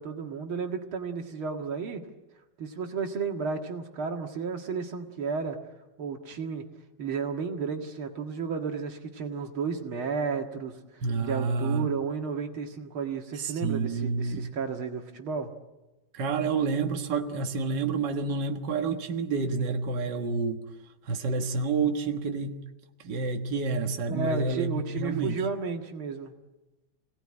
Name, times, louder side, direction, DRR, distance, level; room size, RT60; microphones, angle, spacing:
voice 1, 0.0-2.0 2.6-5.6 6.0-6.7 7.0-15.5 24.1-26.3, right 5 dB, 85° right, 4 dB, 2.7 m, -33 dB
voice 2, 11.0-11.9 13.3-14.5 16.1-20.6 21.0-22.6 23.0-25.4, right 4 dB, 60° right, 4 dB, 2.1 m, -29 dB
27.5 x 18.5 x 9.8 m, 1.1 s
omnidirectional pair, 2.2 m